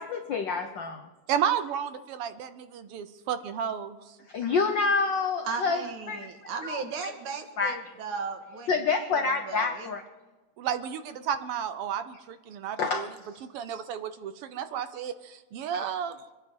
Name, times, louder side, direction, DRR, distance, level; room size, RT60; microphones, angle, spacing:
voice 1, 0.0-1.1 4.3-6.3 6.6-7.1 7.6-7.8 8.7-10.0 12.8-13.1 15.7-15.9, left 4 dB, 80° left, 6 dB, 1.0 m, -28 dB
voice 2, 1.3-4.2 10.6-13.1 13.4-16.2, right 8 dB, 70° right, 10 dB, 1.4 m, -32 dB
voice 3, 5.4-9.9, right 5 dB, 90° right, 4 dB, 3.1 m, -37 dB
25.0 x 10.5 x 5.4 m, 1.2 s
omnidirectional pair, 3.4 m